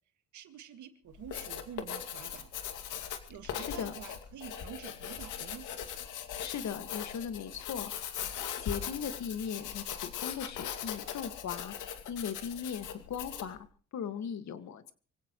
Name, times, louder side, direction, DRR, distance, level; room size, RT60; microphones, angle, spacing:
voice 1, 0.3-2.5 3.3-5.7, right 9 dB, 75° right, 2.0 m, -48 dB
Writing, 1.1-13.6, left 9 dB, 85° left, 2.4 m, -40 dB
voice 2, 3.5-3.9 6.4-7.9 8.6-11.8 12.1-13.7 13.9-14.9, left 7 dB, 65° left, 2.0 m, -38 dB
25.0 x 17.0 x 3.2 m
cardioid pair, 90°, 30 cm